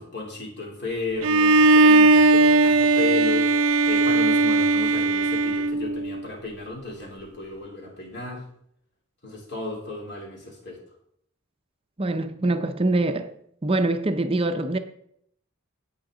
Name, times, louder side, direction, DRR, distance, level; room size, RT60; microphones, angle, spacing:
voice 1, 0.0-8.4 9.2-10.8, left 3 dB, 55° left, 3.2 m, -34 dB
Bowed string instrument, 1.2-6.2, right 2 dB, 75° right, 0.5 m, -18 dB
voice 2, 12.0-13.3 13.6-14.8, right 2 dB, 25° right, 0.5 m, -24 dB
17.0 x 5.7 x 3.8 m
head